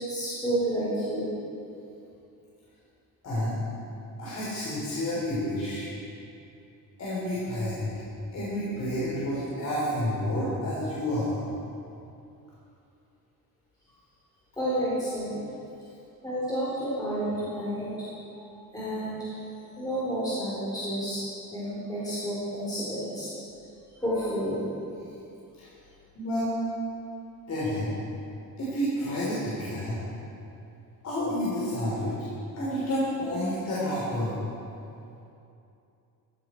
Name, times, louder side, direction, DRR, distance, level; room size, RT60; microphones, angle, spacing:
voice 1, 0.1-1.3 14.6-15.3 16.2-17.9 18.3-18.5 18.7-19.3 19.8-21.2 21.5-23.3 24.0-24.6, right 1 dB, 10° left, -9 dB, 3.8 m, -30 dB
voice 2, 3.2-3.6 4.2-5.9 7.0-7.9 8.3-11.4 15.3-15.4 25.6-25.7 26.1-26.5 27.5-27.9 28.6-30.0 31.0-32.1 32.5-34.4, equal, 50° left, -8 dB, 4.0 m, -29 dB
15.0 x 14.5 x 4.7 m, 2.7 s
cardioid pair, 150°, 35 cm